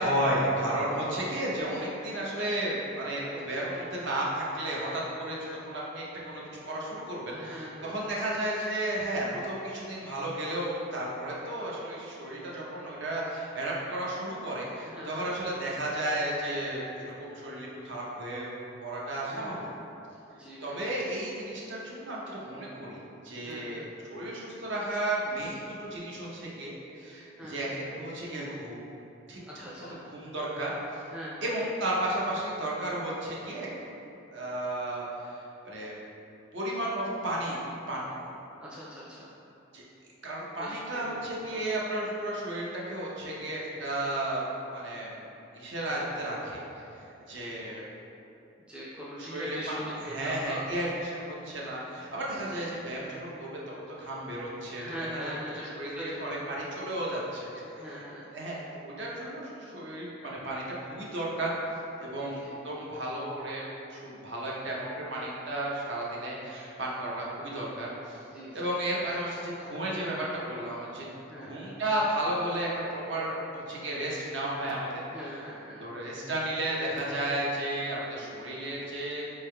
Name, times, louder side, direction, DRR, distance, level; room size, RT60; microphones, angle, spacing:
voice 1, 0.0-18.5 18.8-19.7 20.6-23.8 24.1-28.8 29.3-29.6 30.1-31.0 31.4-34.0 34.3-35.9 36.5-37.6 37.9-38.2 39.7-39.8 40.2-44.4 44.7-45.3 45.5-46.6 47.0-47.9 49.2-54.8 55.1-55.2 55.8-58.0 58.3-61.5 62.0-68.2 68.5-71.1 71.4-75.0 75.8-79.3, right 1 dB, 65° right, -5 dB, 0.7 m, -33 dB
voice 2, 7.3-8.0 14.8-15.3 19.3-19.8 20.3-20.8 23.4-23.8 27.4-27.7 29.5-30.1 31.1-31.5 38.6-39.3 40.6-41.2 41.5-41.8 48.7-50.6 52.3-52.5 54.7-56.4 57.8-58.3 62.1-62.5 68.3-68.7 71.3-71.8 75.1-75.9, equal, 5° right, -8 dB, 0.4 m, -42 dB
4.4 x 3.3 x 2.2 m, 2.8 s
head